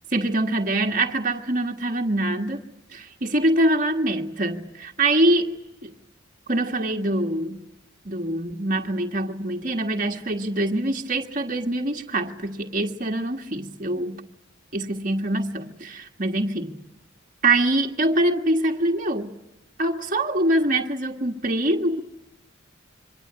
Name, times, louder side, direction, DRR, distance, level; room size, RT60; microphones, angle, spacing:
voice 1, 0.1-2.6 2.9-5.5 5.8-5.9 6.5-7.6 8.1-14.2 14.7-16.8 17.4-19.3 19.8-22.0, right 1 dB, 40° right, 1.7 m, -24 dB
27.5 x 24.0 x 8.8 m
head